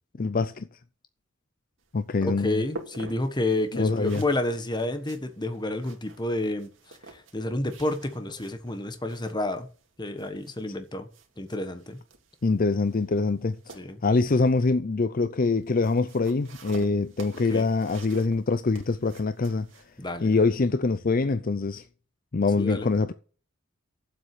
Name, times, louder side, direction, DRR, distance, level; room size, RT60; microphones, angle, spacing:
voice 1, 0.2-0.7 1.9-2.6 3.7-4.2 12.4-19.7 20.2-21.8 22.3-23.1, left 3 dB, 45° left, 0.5 m, -24 dB
sound 1, 1.8-20.6, right 2 dB, 70° right, 2.1 m, -49 dB
voice 2, 2.2-6.7 7.3-9.7 10.0-11.1 11.4-12.0 13.7-14.0 17.5-17.6 20.0-20.4 22.6-22.9, left 2 dB, 20° left, 1.3 m, -30 dB
8.9 x 7.8 x 6.7 m
head